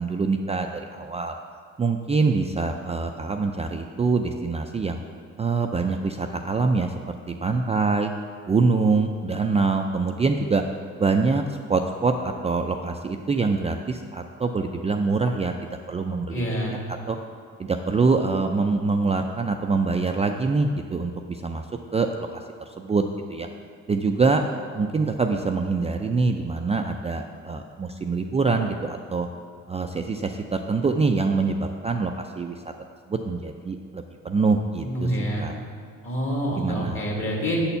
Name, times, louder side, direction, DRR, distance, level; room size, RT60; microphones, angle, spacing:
voice 1, 0.0-1.4 1.8-5.0 5.4-8.1 8.5-10.6 11.0-11.4 11.7-15.5 15.9-16.4 16.9-17.2 17.6-21.6 21.9-23.0 23.3-23.5 23.9-24.4 24.7-29.3 29.7-32.6 33.1-35.1 35.4-35.6 36.6-37.0, right 4 dB, 20° right, 4 dB, 0.4 m, -24 dB
voice 2, 16.3-16.8 34.8-35.5 36.0-37.6, equal, 45° left, -1 dB, 2.1 m, -27 dB
8.0 x 4.3 x 6.8 m, 2.1 s
cardioid pair, 90°, 30 cm